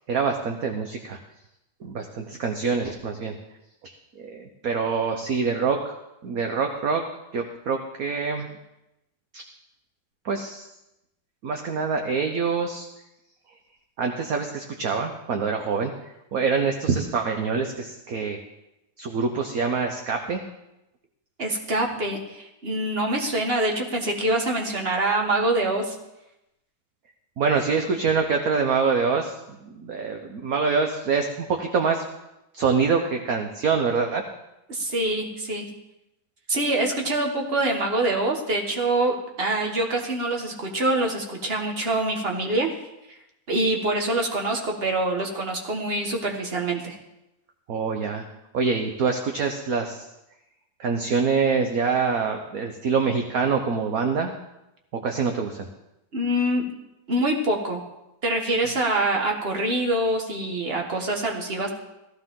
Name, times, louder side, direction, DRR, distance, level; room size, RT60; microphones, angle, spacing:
voice 1, 0.1-1.2 1.8-3.4 3.8-6.0 6.2-7.0 7.3-8.5 9.3-9.4 10.2-10.7 11.4-12.9 14.0-15.9 16.3-18.4 19.0-20.4 27.4-32.0 32.5-34.2 47.7-48.3 48.5-50.0 50.8-54.3 55.0-55.7, right 5 dB, 55° right, 4 dB, 1.3 m, -25 dB
voice 2, 21.4-26.0 34.7-35.7 36.5-42.7 43.5-47.0 56.1-56.7 57.1-57.8 58.2-61.7, right 1 dB, 30° right, 1 dB, 1.8 m, -25 dB
16.0 x 15.0 x 3.8 m, 0.91 s
omnidirectional pair, 2.0 m